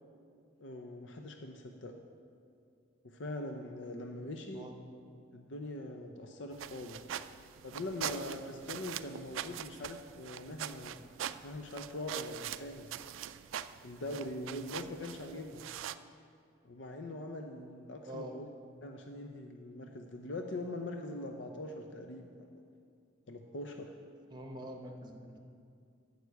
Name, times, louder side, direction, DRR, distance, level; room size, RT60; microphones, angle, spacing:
voice 1, 0.6-1.9 3.0-4.7 5.3-7.1 7.6-11.0 11.4-12.9 13.8-15.7 16.6-18.5 18.8-22.6 23.3-24.0, left 1 dB, 70° left, 4 dB, 0.7 m, -42 dB
sound 1, 6.5-15.9, right 10 dB, 85° right, 0.3 m, -43 dB
voice 2, 18.1-18.4 24.3-25.4, equal, 20° right, 4 dB, 0.9 m, -45 dB
9.3 x 6.6 x 8.1 m, 2.3 s
head